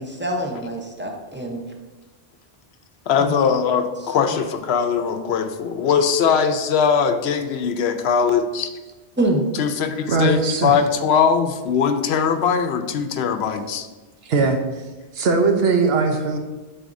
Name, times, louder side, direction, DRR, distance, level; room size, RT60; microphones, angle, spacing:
voice 1, 0.0-1.6 3.2-3.3 4.2-4.3 9.2-9.5, right 1 dB, 15° right, 1 dB, 0.6 m, -25 dB
voice 2, 3.1-8.7 9.6-13.9, left 6 dB, 80° left, 8 dB, 0.8 m, -20 dB
voice 3, 10.1-10.8 14.2-14.8 15.1-16.4, right 4 dB, 70° right, 5 dB, 0.9 m, -20 dB
10.5 x 4.2 x 2.6 m, 1.2 s
omnidirectional pair, 1.1 m